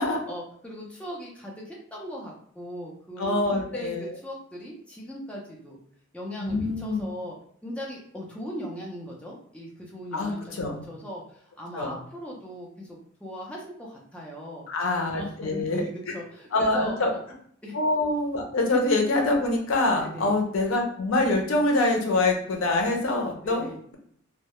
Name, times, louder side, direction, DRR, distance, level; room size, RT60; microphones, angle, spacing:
voice 1, 0.3-3.4 3.7-5.8 6.1-7.4 7.6-10.6 10.9-14.6 15.1-17.2 17.6-17.8 20.0-20.4 23.4-23.8, equal, 5° left, -3 dB, 0.4 m, -39 dB
voice 2, 3.2-4.1 6.4-7.0 10.1-10.9 11.7-11.9 14.7-15.8 16.5-17.1 17.7-23.9, left 2 dB, 80° left, 2 dB, 0.6 m, -25 dB
2.2 x 2.0 x 2.9 m, 0.63 s
head